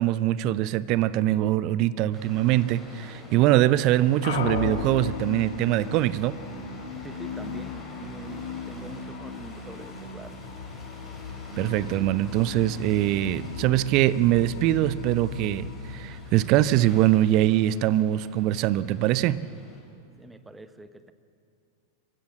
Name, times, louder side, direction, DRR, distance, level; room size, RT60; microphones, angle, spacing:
voice 1, 0.0-6.4 11.6-19.4, right 14 dB, 45° right, 18 dB, 0.6 m, -23 dB
sound 1, 2.1-19.8, left 2 dB, 10° left, 5.8 m, -47 dB
sound 2, 4.2-17.1, left 5 dB, 60° left, 1.7 m, -36 dB
voice 2, 7.0-10.5 20.0-21.1, right 2 dB, 10° right, 11 dB, 1.1 m, -44 dB
24.5 x 15.5 x 7.7 m, 2.4 s
figure-of-eight pair, 90°, 0 cm